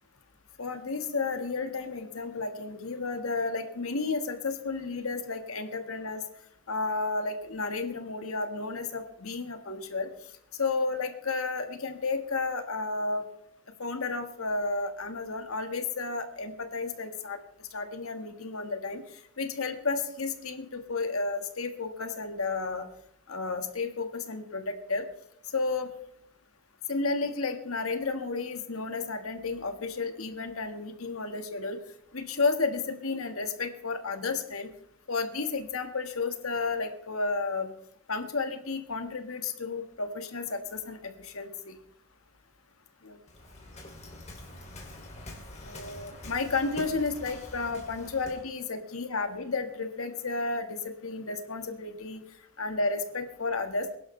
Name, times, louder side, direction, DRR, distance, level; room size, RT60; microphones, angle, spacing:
voice 1, 0.6-6.2 6.7-10.1 10.6-13.3 13.8-17.4 17.7-19.0 19.4-22.9 23.3-25.0 25.5-25.9 26.9-31.8 32.1-34.7 35.1-37.7 38.1-41.7 43.0-43.2 45.6-52.2 52.6-53.9, left 3 dB, 85° left, 6 dB, 1.7 m, -32 dB
Waves surf, 43.3-48.5, left 1 dB, 35° left, 2.9 m, -45 dB
22.0 x 11.5 x 3.3 m, 0.74 s
head